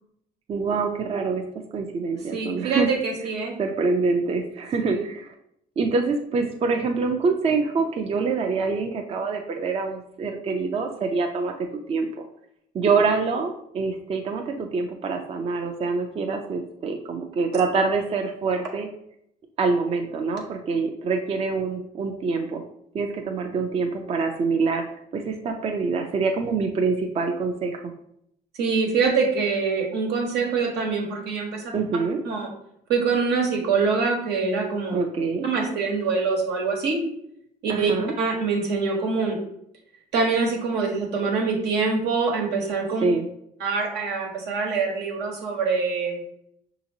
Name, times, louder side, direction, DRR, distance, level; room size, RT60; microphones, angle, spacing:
voice 1, 0.5-1.4 1.7-3.0 3.6-5.3 5.8-11.5 11.9-12.2 12.7-18.9 19.6-22.6 22.9-27.9 31.7-32.2 34.9-35.4 37.7-38.1 43.0-43.3, right 4 dB, 35° right, 3 dB, 0.5 m, -25 dB
voice 2, 2.3-3.6 4.8-5.0 28.6-31.7 32.2-32.5 32.9-35.0 35.4-37.0 37.6-39.4 40.1-43.0 43.6-46.2, right 4 dB, 80° right, 0 dB, 1.2 m, -24 dB
5.7 x 2.9 x 2.7 m, 0.74 s
cardioid pair, 110°, 17 cm